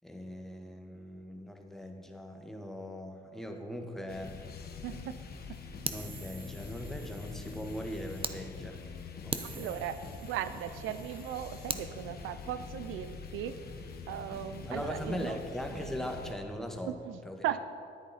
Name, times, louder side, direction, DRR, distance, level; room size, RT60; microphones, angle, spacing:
voice 1, 0.0-4.3 5.9-8.8 9.2-9.8 14.6-17.0 17.2-17.4, equal, ahead, 3 dB, 1.3 m, -40 dB
sound 1, 4.1-16.3, left 5 dB, 50° left, 1.2 m, -45 dB
voice 2, 4.8-5.2 5.5-5.6 9.4-10.0 10.2-13.6 14.1-15.4 16.9-17.6, right 11 dB, 90° right, 12 dB, 0.5 m, -37 dB
Fire, 5.8-8.4 8.8-8.9 9.3-11.9, right 4 dB, 25° right, 0.7 m, -42 dB
11.0 x 9.8 x 4.1 m, 2.5 s
cardioid pair, 90°, 20 cm